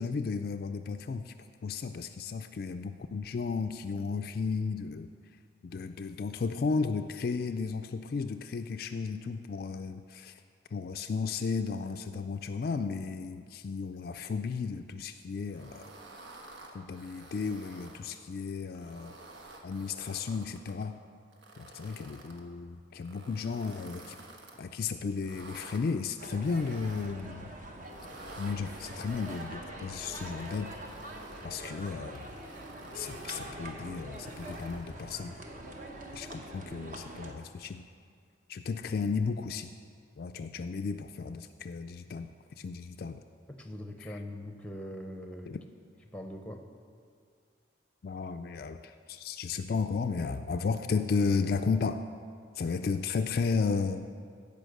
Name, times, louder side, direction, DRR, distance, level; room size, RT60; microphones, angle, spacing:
voice 1, 0.0-1.3 1.6-5.1 5.6-10.4 10.7-15.9 16.7-19.1 19.6-21.0 21.6-24.2 24.6-27.5 28.4-30.7 31.4-32.3 32.9-35.3 36.1-37.9 38.5-39.7 40.2-42.3 42.6-43.2 45.5-45.6 48.0-52.0 52.6-54.1, left 5 dB, 50° left, 8 dB, 0.3 m, -34 dB
sound 1, 15.5-18.0 18.6-20.8 21.3-22.4 22.9-24.6 25.1-25.8 26.4-27.3 27.8-29.5 30.0-31.5 32.0-33.6 34.1-35.0, right 2 dB, 75° right, 1.3 m, -51 dB
sound 2, 26.2-37.3, right 1 dB, 45° right, 1.0 m, -44 dB
voice 2, 43.5-45.6 46.1-46.6, left 1 dB, 5° left, 5 dB, 0.7 m, -42 dB
15.5 x 5.4 x 6.5 m, 2.2 s
head